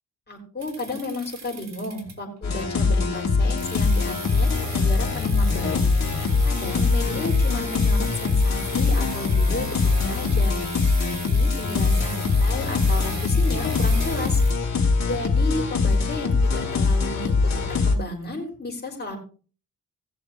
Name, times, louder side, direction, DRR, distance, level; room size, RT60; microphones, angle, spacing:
voice 1, 0.3-5.8 6.4-10.5 11.0-14.4 15.0-19.2, left 1 dB, 30° left, 0 dB, 5.5 m, -33 dB
sound 1, 0.6-2.4 3.6-14.5, right 4 dB, 50° right, 3.5 m, -39 dB
sound 2, 2.4-17.9, left 4 dB, 50° left, 3.0 m, -22 dB
19.5 x 7.0 x 3.1 m, 0.38 s
cardioid pair, 115°, 35 cm